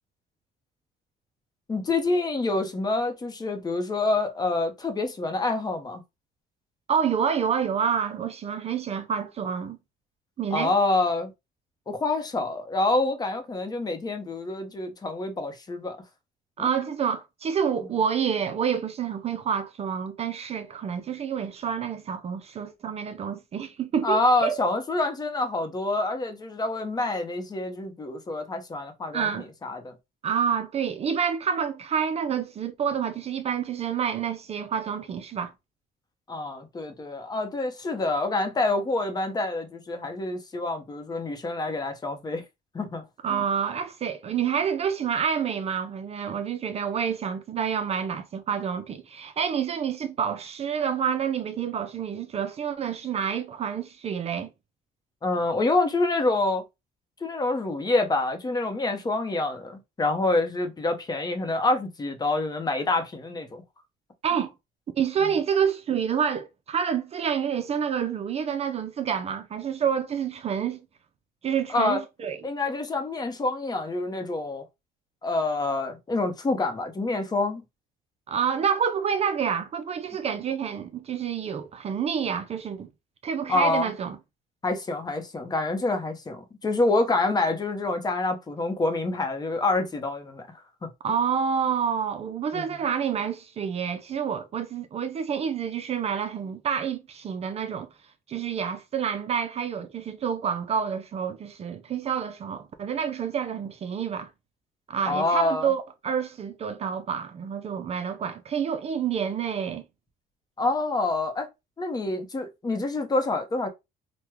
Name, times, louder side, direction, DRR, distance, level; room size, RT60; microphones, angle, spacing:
voice 1, 1.7-6.0 10.5-11.3 11.9-16.0 16.6-16.7 24.0-29.9 36.3-42.4 42.7-43.4 55.2-56.6 57.2-63.6 71.7-72.0 72.4-74.6 75.2-77.6 83.5-83.9 84.6-90.4 90.8-90.9 92.5-92.8 105.1-105.7 110.6-111.5 111.8-113.7, left 2 dB, 25° left, 0.8 m, -27 dB
voice 2, 6.9-9.8 10.4-10.7 16.6-24.7 29.1-29.5 30.2-35.5 43.2-54.5 64.2-64.5 65.0-70.8 71.4-72.4 78.3-82.9 83.2-84.2 91.0-97.9 98.3-104.3 104.9-109.8, right 7 dB, 40° right, 0.4 m, -28 dB
3.5 x 2.2 x 3.0 m
cardioid pair, 110°, 17 cm